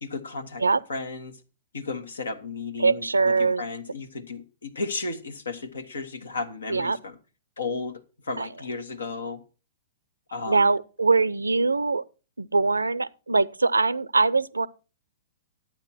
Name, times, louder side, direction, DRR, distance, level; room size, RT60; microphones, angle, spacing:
voice 1, 0.0-0.6 0.9-1.4 1.7-7.2 7.6-9.4 10.3-10.7, left 3 dB, 75° left, 1.5 m, -34 dB
voice 2, 2.8-3.6 6.7-7.0 8.4-8.5 10.5-12.0 12.4-14.7, right 3 dB, 85° right, 0.5 m, -22 dB
12.0 x 9.0 x 4.3 m
figure-of-eight pair, 115°, 0 cm